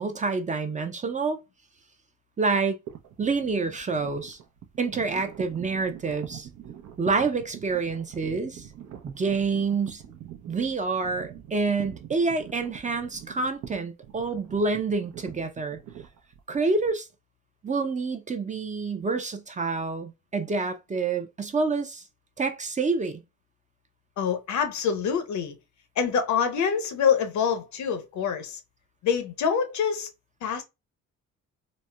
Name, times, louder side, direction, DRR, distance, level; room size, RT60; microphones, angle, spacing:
voice 1, 0.0-1.4 2.4-2.8 3.2-4.4 4.8-6.5 7.0-8.7 9.0-10.0 10.5-15.8 16.5-17.1 17.6-22.0 22.4-23.2, right 4 dB, 25° right, 0.5 m, -27 dB
sound 1, 2.9-16.9, right 10 dB, 70° right, 0.6 m, -44 dB
voice 2, 24.2-25.6 26.0-28.6 29.0-30.1 30.4-30.6, left 7 dB, 70° left, 0.7 m, -25 dB
4.0 x 2.0 x 2.2 m
cardioid pair, 90°, 30 cm